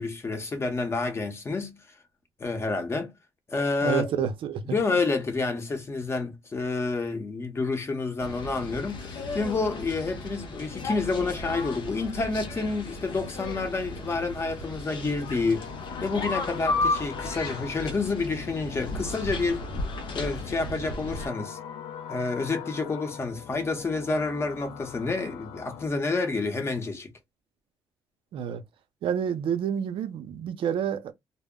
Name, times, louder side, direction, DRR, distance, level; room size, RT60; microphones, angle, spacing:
voice 1, 0.0-1.8 2.4-3.1 3.5-4.3 4.6-15.7 16.0-19.6 20.1-21.6 22.1-27.1, left 3 dB, 25° left, 0.8 m, -29 dB
voice 2, 3.8-4.8 28.3-28.6 29.0-31.1, right 8 dB, 70° right, 0.6 m, -29 dB
sound 1, 8.2-21.3, left 2 dB, 60° left, 0.7 m, -34 dB
sound 2, 15.2-25.9, left 9 dB, 85° left, 0.4 m, -42 dB
2.1 x 2.1 x 3.5 m
cardioid pair, 110°, 9 cm